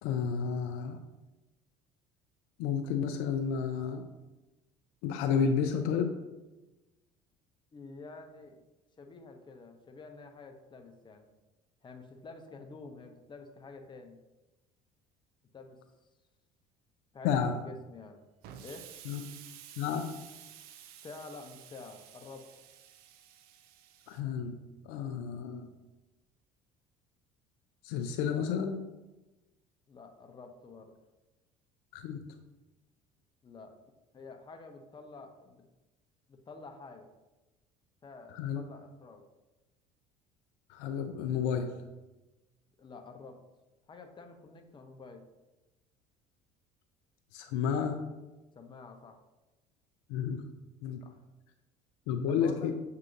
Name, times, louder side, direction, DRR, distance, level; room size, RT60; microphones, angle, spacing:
voice 1, 0.0-1.0 2.6-4.1 5.0-6.1 17.2-17.5 19.1-19.2 19.8-20.1 24.1-24.5 24.9-25.7 27.8-28.8 31.9-32.2 38.3-38.6 40.7-41.7 47.3-48.0 50.1-50.4 50.8-51.0 52.1-52.7, left 7 dB, 70° left, 6 dB, 0.4 m, -31 dB
voice 2, 7.7-8.6 9.0-11.3 11.8-14.2 15.5-15.8 17.1-17.3 17.6-18.2 18.6-18.9 21.0-22.5 29.9-30.9 33.4-33.8 34.1-35.6 36.3-37.1 38.0-39.2 42.8-43.4 43.9-45.2 48.5-49.2 51.0-51.2 52.2-52.7, left 3 dB, 25° left, 4 dB, 0.7 m, -49 dB
Explosion, 18.4-24.2, right 10 dB, 60° right, 0.4 m, -52 dB
7.3 x 2.8 x 2.6 m, 1.1 s
hypercardioid pair, 70°, 18 cm